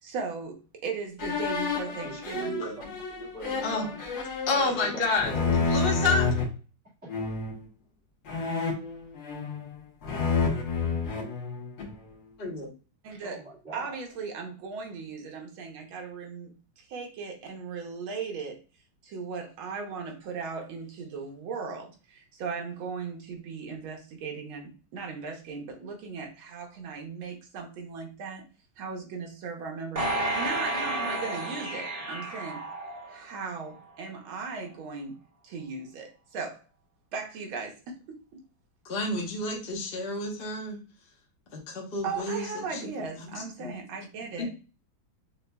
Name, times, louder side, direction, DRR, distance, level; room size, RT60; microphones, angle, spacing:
voice 1, 0.0-2.5 13.0-13.4 13.7-18.6 19.0-28.4 28.8-30.1 30.3-32.6 33.1-35.2 35.4-36.6 37.1-38.4 42.0-44.5, right 5 dB, 75° right, 2 dB, 1.7 m, -37 dB
sound 1, 1.2-6.5 7.1-7.6 8.3-9.7 10.0-12.0, left 4 dB, 85° left, 2.0 m, -29 dB
voice 2, 1.8-4.0 4.5-5.8 13.2-14.0, right 3 dB, 5° right, -8 dB, 1.4 m, -40 dB
voice 3, 4.5-6.3 12.4-12.7 38.8-40.8 41.5-42.8 43.3-43.7 44.4-44.5, left 3 dB, 50° left, -1 dB, 0.7 m, -30 dB
sound 2, 30.0-33.4 33.9-34.0, right 1 dB, 35° right, 0.6 m, -31 dB
6.4 x 2.7 x 2.2 m, 0.34 s
omnidirectional pair, 2.3 m